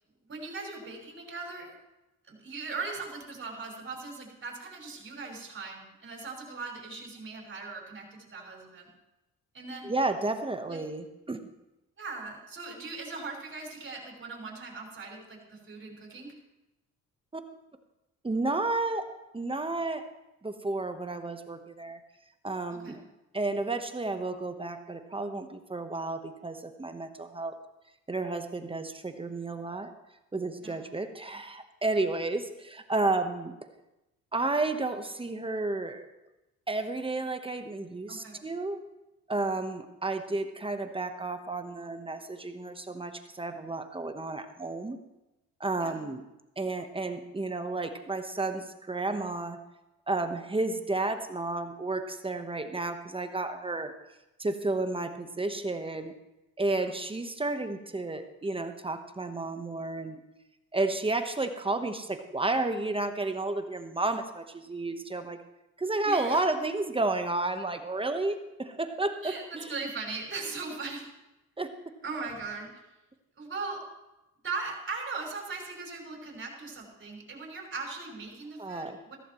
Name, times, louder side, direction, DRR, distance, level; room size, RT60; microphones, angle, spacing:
voice 1, 0.3-1.7 2.3-8.9 9.5-9.9 10.6-10.8 12.0-16.3 22.7-23.0 30.6-30.8 38.1-38.4 45.8-46.0 66.0-66.4 69.2-71.1 72.0-72.7 73.4-73.8 74.4-79.2, right 4 dB, 40° right, -1 dB, 5.2 m, -39 dB
voice 2, 9.8-11.5 17.3-17.4 18.2-19.0 19.3-20.0 20.4-22.0 22.4-23.0 23.3-27.5 28.1-29.9 30.3-33.5 34.3-36.1 36.7-38.8 39.3-45.0 45.6-46.3 46.6-49.6 50.1-53.9 54.4-56.1 56.6-60.2 60.7-65.4 65.8-69.8 71.6-71.7 78.6-79.0, right 2 dB, 20° right, 7 dB, 1.1 m, -32 dB
15.5 x 14.0 x 3.1 m, 0.95 s
cardioid pair, 90°, 30 cm